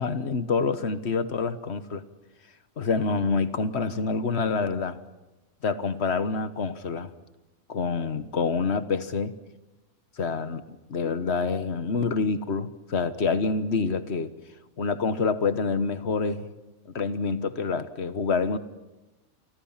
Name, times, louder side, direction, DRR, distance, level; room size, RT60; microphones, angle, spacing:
voice 1, 0.0-2.0 2.8-5.0 5.6-7.1 7.7-9.3 10.2-10.6 10.9-14.3 14.8-16.5 16.9-18.6, left 4 dB, 50° left, 12 dB, 1.4 m, -27 dB
30.0 x 25.0 x 5.8 m, 1.1 s
omnidirectional pair, 1.5 m